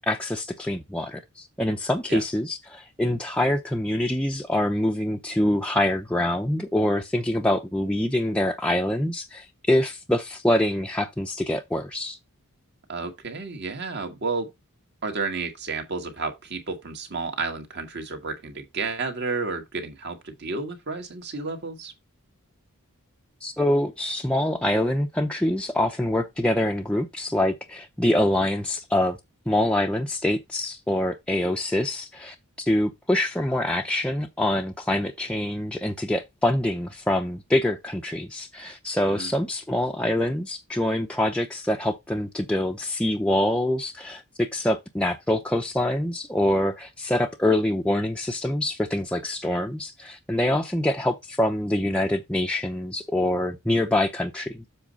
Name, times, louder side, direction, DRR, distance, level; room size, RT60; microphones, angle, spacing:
voice 1, 0.1-12.2 23.4-29.2 29.5-32.4 32.7-54.7, left 1 dB, 5° left, 0.6 m, -25 dB
voice 2, 12.9-14.5 15.0-21.9 39.1-39.3, right 4 dB, 50° right, 2.0 m, -31 dB
7.5 x 4.1 x 5.2 m
head